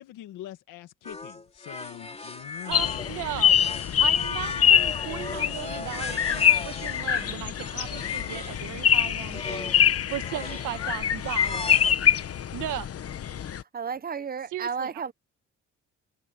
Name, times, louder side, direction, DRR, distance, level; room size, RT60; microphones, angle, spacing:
voice 1, 0.0-3.0, left 13 dB, 90° left, 1.9 m, -43 dB
sound 1, 1.0-8.7 9.2-9.9 10.2-11.9, left 3 dB, 20° left, 3.3 m, -38 dB
sound 2, 2.7-13.6, left 9 dB, 50° left, 1.2 m, -25 dB
voice 2, 2.7-3.6 4.0-9.7 10.1-11.6 12.5-12.9 14.5-14.9, right 13 dB, 90° right, 1.6 m, -36 dB
voice 3, 13.7-15.1, right 6 dB, 30° right, 1.0 m, -32 dB
cardioid pair, 90°, 30 cm